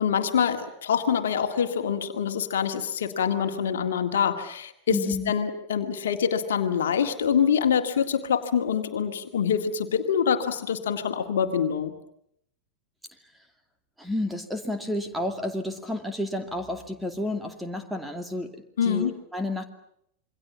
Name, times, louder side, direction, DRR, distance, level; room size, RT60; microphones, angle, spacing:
voice 1, 0.0-11.9 18.8-19.1, left 7 dB, 60° left, 6 dB, 1.9 m, -25 dB
voice 2, 4.9-5.3 14.0-18.5 18.8-19.6, left 1 dB, 5° right, 6 dB, 2.6 m, -31 dB
27.5 x 23.0 x 7.2 m, 0.74 s
figure-of-eight pair, 90°, 0 cm